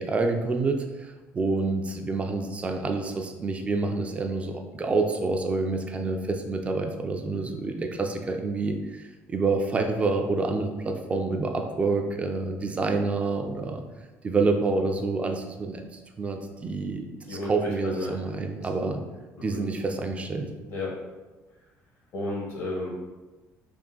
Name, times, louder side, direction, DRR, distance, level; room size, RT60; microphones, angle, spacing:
voice 1, 0.0-13.8 14.2-19.0 19.4-20.5, right 3 dB, 20° right, 4 dB, 0.3 m, -28 dB
voice 2, 17.3-18.1 18.8-18.9 19.5-19.6 20.7-21.0 22.1-22.9, left 2 dB, 60° left, -3 dB, 1.0 m, -32 dB
3.5 x 2.4 x 3.8 m, 1.2 s
cardioid pair, 150°, 6 cm